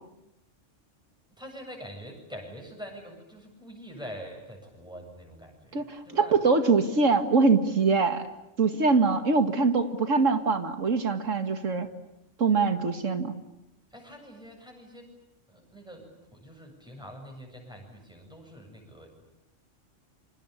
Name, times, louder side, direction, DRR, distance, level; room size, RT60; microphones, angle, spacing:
voice 1, 1.3-6.4 13.9-15.1 15.5-19.1, equal, 5° right, 1 dB, 7.9 m, -45 dB
voice 2, 5.7-8.2 8.6-11.9 12.4-13.3, right 4 dB, 85° right, 8 dB, 2.3 m, -23 dB
28.0 x 25.5 x 8.4 m, 0.90 s
omnidirectional pair, 1.3 m